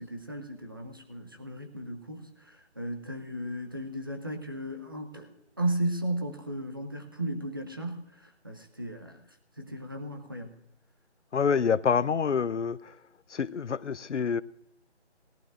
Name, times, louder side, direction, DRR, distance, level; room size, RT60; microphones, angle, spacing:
voice 1, 0.0-9.2 9.6-10.6, right 1 dB, 20° right, 0.7 m, -35 dB
voice 2, 11.3-13.0 13.3-14.4, left 6 dB, 90° left, 0.7 m, -27 dB
20.0 x 12.0 x 2.5 m
figure-of-eight pair, 165°, 34 cm